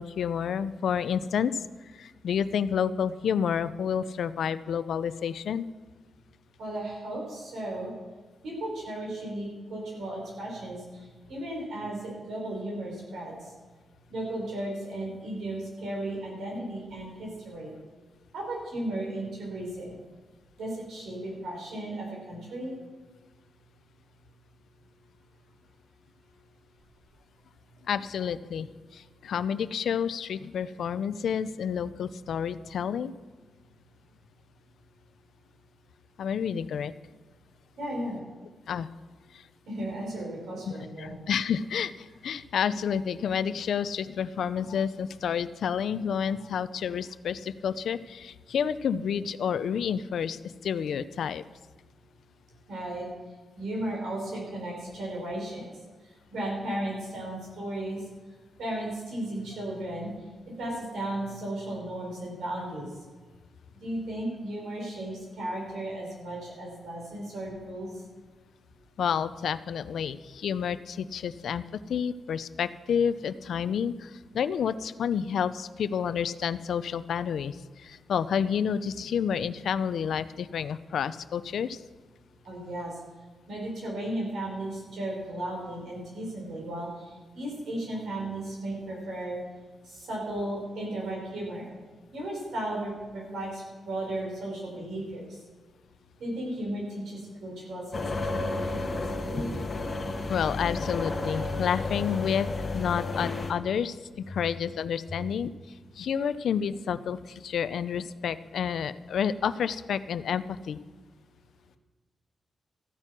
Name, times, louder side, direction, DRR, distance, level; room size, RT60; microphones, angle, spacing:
voice 1, 0.0-1.6 1.9-5.6 27.9-33.1 36.2-36.9 38.7-38.9 40.6-51.4 69.0-71.6 71.9-81.8 100.3-105.5 106.0-110.8, left 7 dB, 80° left, 14 dB, 0.5 m, -30 dB
voice 2, 6.6-7.9 8.4-13.5 14.1-17.8 18.3-20.0 20.6-22.8 37.8-38.2 39.7-41.1 52.7-53.1 53.6-55.7 56.0-58.0 58.6-60.1 60.5-62.9 63.8-68.0 82.4-83.0 83.5-89.4 89.8-91.7 92.1-95.4 96.2-99.5 105.1-105.2, right 1 dB, 80° right, -2 dB, 5.3 m, -35 dB
sound 1, 97.9-103.5, left 3 dB, 35° left, 1.4 m, -32 dB
14.5 x 9.0 x 6.1 m, 1.4 s
wide cardioid pair, 120°, 0 cm